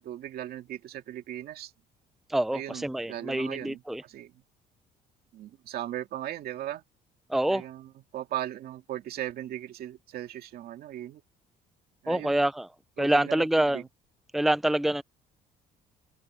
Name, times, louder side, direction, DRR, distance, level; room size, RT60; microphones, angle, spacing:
voice 1, 0.0-1.7 2.5-4.4 5.3-6.8 7.4-11.2 12.0-12.4 13.0-13.8, right 12 dB, 65° right, 2.3 m, -38 dB
voice 2, 2.3-4.0 7.3-7.6 12.1-12.7 13.0-13.8 14.3-15.0, right 1 dB, ahead, 0.7 m, -26 dB
cardioid pair, 110°, 17 cm